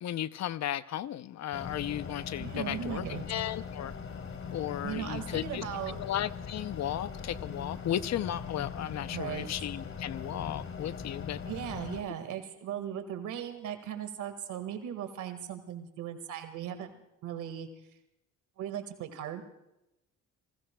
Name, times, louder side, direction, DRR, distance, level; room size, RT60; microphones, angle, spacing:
voice 1, 0.0-3.9 4.5-11.4, left 11 dB, 60° left, 0.6 m, -35 dB
sound 1, 1.5-12.0, left 6 dB, 45° left, 2.0 m, -40 dB
voice 2, 2.4-3.5 4.8-6.0 9.1-9.5 11.5-16.9 17.2-17.7 18.6-19.4, right 9 dB, 85° right, 1.8 m, -38 dB
29.5 x 18.5 x 2.3 m
cardioid pair, 90°, 30 cm